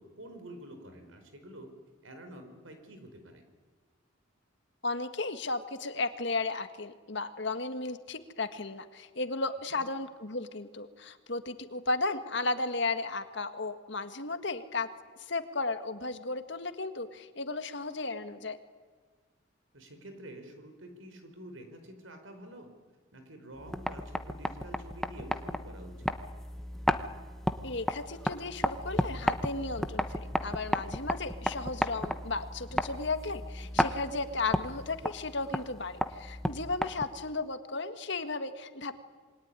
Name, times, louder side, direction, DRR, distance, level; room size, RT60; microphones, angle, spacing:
voice 1, 0.0-1.7 2.0-3.4 9.7-9.8 19.7-22.7 23.1-26.1 36.9-37.0, right 1 dB, 70° right, 7 dB, 4.8 m, -48 dB
voice 2, 4.8-14.9 15.2-18.6 27.6-39.0, left 3 dB, 55° left, 9 dB, 1.7 m, -34 dB
sound 1, 23.6-37.3, equal, ahead, 0.9 m, -34 dB
27.0 x 22.0 x 9.8 m, 1.5 s
head